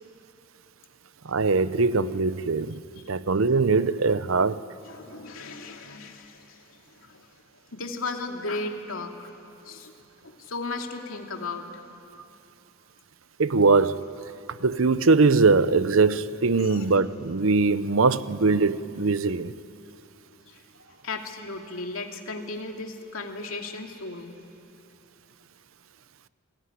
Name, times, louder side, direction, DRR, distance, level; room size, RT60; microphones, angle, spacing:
voice 1, 1.2-2.8 3.1-4.6 13.4-14.1 14.6-19.5, right 4 dB, 70° right, 0.7 m, -21 dB
voice 2, 4.9-6.6 7.1-7.2 7.7-9.3 9.6-9.9 10.2-11.6 16.6-16.8 20.8-24.4, left 3 dB, 75° left, 2.6 m, -35 dB
29.0 x 20.5 x 9.9 m
head